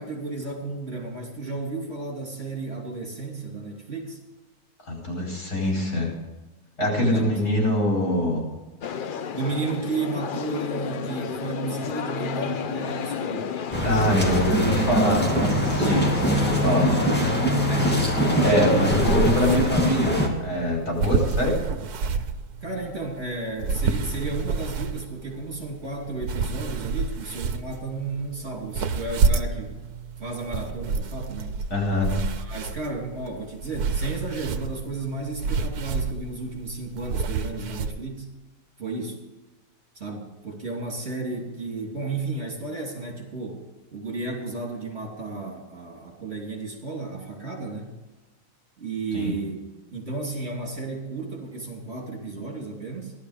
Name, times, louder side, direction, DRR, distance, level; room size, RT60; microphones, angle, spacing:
voice 1, 0.0-4.2 7.1-7.3 9.3-13.5 17.6-17.9 18.3-19.1 22.6-29.8 30.2-31.5 32.4-38.3 38.8-39.2 39.9-43.6 43.9-47.9 48.8-49.6 49.9-53.1, right 3 dB, 45° right, 0 dB, 3.1 m, -33 dB
voice 2, 4.9-6.1 6.8-8.4 13.8-16.1 16.4-16.9 17.2-17.3 17.7-17.9 18.4-21.6 31.7-32.1 49.1-49.3, left 1 dB, 80° left, -2 dB, 5.2 m, -24 dB
sound 1, 8.8-19.6, left 7 dB, 60° left, 0.5 m, -31 dB
sound 2, 13.7-20.3, right 1 dB, 5° left, 2.2 m, -23 dB
sound 3, 18.9-37.9, right 4 dB, 90° right, 1.4 m, -29 dB
15.5 x 12.0 x 5.0 m, 1.2 s
omnidirectional pair, 1.6 m